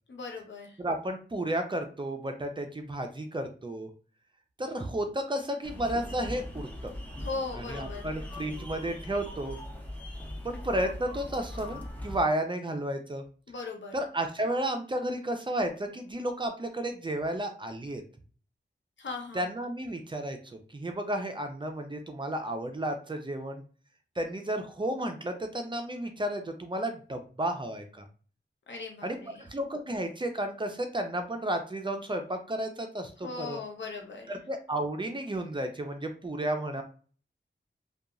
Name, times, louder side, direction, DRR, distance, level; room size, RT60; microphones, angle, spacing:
voice 1, 0.1-0.8 7.2-8.0 13.5-13.9 19.0-19.4 28.7-29.4 33.2-34.3, left 4 dB, 75° left, 2 dB, 0.7 m, -38 dB
voice 2, 0.8-3.9 4.6-6.9 7.5-9.6 10.4-13.2 13.9-18.0 19.3-23.6 24.2-28.0 29.0-33.6 34.3-36.8, right 1 dB, 25° right, 5 dB, 0.4 m, -32 dB
sound 1, 5.6-12.2, left 1 dB, 10° left, 0.7 m, -40 dB
2.8 x 2.3 x 2.4 m, 0.41 s
wide cardioid pair, 90°, 19 cm